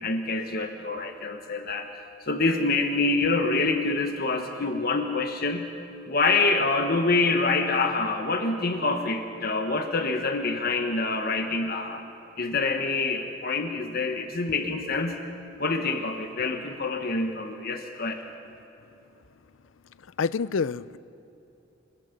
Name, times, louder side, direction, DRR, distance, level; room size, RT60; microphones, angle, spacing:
voice 1, 0.0-1.9 2.3-5.7 6.1-12.0 12.4-15.2 15.6-18.2, left 3 dB, 50° left, 5 dB, 1.3 m, -26 dB
voice 2, 20.2-21.0, left 5 dB, 85° left, 18 dB, 0.5 m, -27 dB
26.0 x 23.0 x 5.3 m, 2.8 s
head